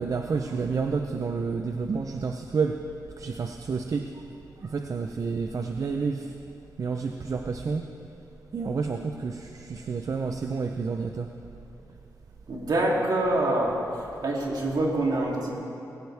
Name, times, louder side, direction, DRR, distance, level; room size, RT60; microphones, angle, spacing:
voice 1, 0.0-2.8 3.2-4.1 4.6-6.3 6.8-7.8 8.5-11.3, right 5 dB, 50° right, 5 dB, 0.6 m, -29 dB
voice 2, 12.5-13.8 14.2-15.5, right 1 dB, 70° right, -3 dB, 3.0 m, -25 dB
21.0 x 16.0 x 3.5 m, 2.7 s
wide cardioid pair, 125°, 7 cm